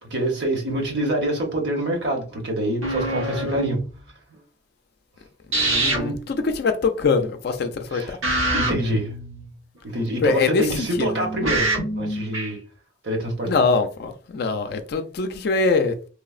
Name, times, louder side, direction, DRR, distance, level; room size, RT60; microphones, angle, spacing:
voice 1, 0.0-3.8 7.9-8.2 8.5-9.1 9.8-11.7 11.9-12.6 13.0-13.6, right 1 dB, 55° right, 0.9 m, -26 dB
sound 1, 2.8-3.8 5.5-6.1 8.2-9.8 10.9-12.5, right 2 dB, 85° right, 1.2 m, -25 dB
voice 2, 5.5-8.2 10.2-11.2 13.4-15.9, left 4 dB, 55° left, 0.4 m, -23 dB
3.1 x 2.0 x 2.3 m
head